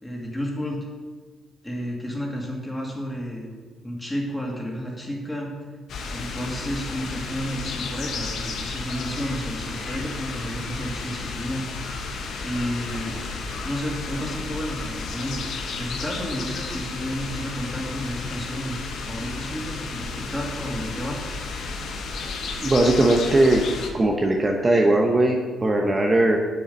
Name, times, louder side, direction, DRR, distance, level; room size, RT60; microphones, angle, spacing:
voice 1, 0.0-0.9 1.6-3.5 3.8-5.5 6.1-11.7 12.4-13.2 13.6-18.8 19.1-21.2, equal, 10° left, -2 dB, 2.5 m, -31 dB
sound 1, 5.9-23.9, left 4 dB, 70° left, 1.3 m, -33 dB
voice 2, 22.6-23.6 23.9-26.4, right 2 dB, 25° right, 1 dB, 1.0 m, -19 dB
7.4 x 6.9 x 5.4 m, 1.4 s
cardioid pair, 90°, 0 cm